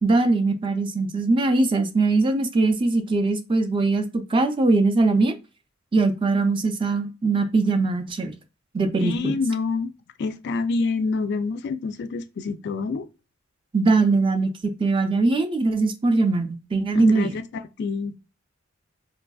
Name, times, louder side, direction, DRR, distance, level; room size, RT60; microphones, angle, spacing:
voice 1, 0.0-5.3 5.9-8.3 8.7-9.3 13.7-17.4, right 3 dB, 25° right, 0.4 m, -21 dB
voice 2, 9.0-9.9 10.2-13.1 16.9-18.2, left 4 dB, 55° left, 0.3 m, -27 dB
4.6 x 2.5 x 2.3 m
head